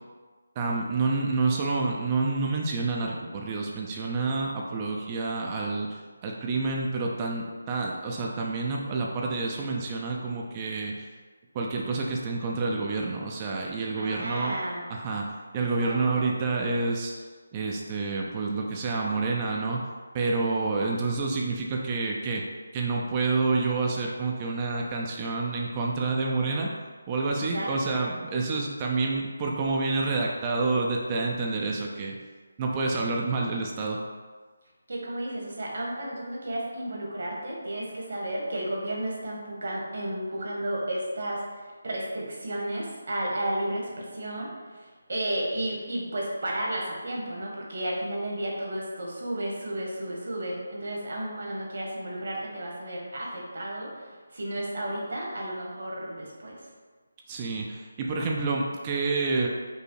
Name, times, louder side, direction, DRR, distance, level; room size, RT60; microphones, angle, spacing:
voice 1, 0.6-11.1 11.5-14.6 14.9-15.3 15.5-17.1 17.5-19.8 20.1-22.4 22.7-26.7 27.1-32.2 32.6-34.0 57.3-59.5, right 3 dB, 25° right, -1 dB, 0.5 m, -28 dB
voice 2, 14.0-14.8 15.6-16.2 27.5-28.0 34.9-56.6, right 1 dB, 60° right, -3 dB, 1.4 m, -33 dB
5.3 x 2.0 x 4.6 m, 1.4 s
figure-of-eight pair, 160°, 0 cm